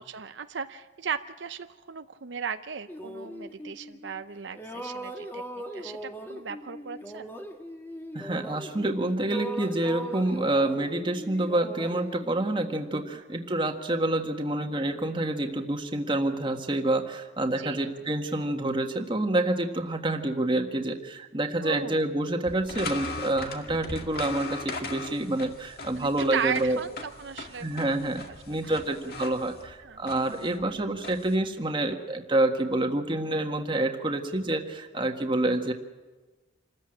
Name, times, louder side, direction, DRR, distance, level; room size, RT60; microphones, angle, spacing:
voice 1, 0.0-5.4 5.7-7.4 17.6-17.9 21.6-22.1 26.0-28.4 28.6-28.8 29.8-30.0, right 6 dB, 80° right, 9 dB, 0.7 m, -36 dB
sound 1, 2.9-4.2 4.5-8.9 9.2-13.0, equal, 10° left, 1.6 m, -39 dB
voice 2, 8.1-26.8 27.6-35.7, right 1 dB, 25° right, 4 dB, 1.6 m, -28 dB
sound 2, 22.4-31.3, left 3 dB, 55° left, 2.0 m, -39 dB
26.5 x 14.0 x 8.9 m, 1.2 s
head